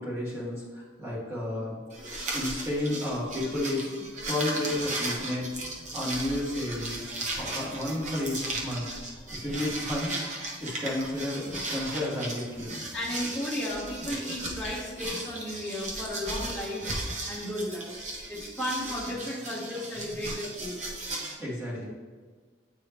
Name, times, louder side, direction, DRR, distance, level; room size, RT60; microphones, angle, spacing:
voice 1, 0.0-5.5 5.9-7.0 7.4-8.9 9.3-12.8 21.4-21.9, left 1 dB, 15° right, -7 dB, 1.9 m, -32 dB
sound 1, 1.9-21.3, right 2 dB, 40° right, 1.0 m, -36 dB
voice 2, 12.9-16.9 17.3-17.9 18.3-20.8, left 1 dB, 5° left, -9 dB, 1.1 m, -34 dB
8.6 x 4.8 x 3.0 m, 1.5 s
head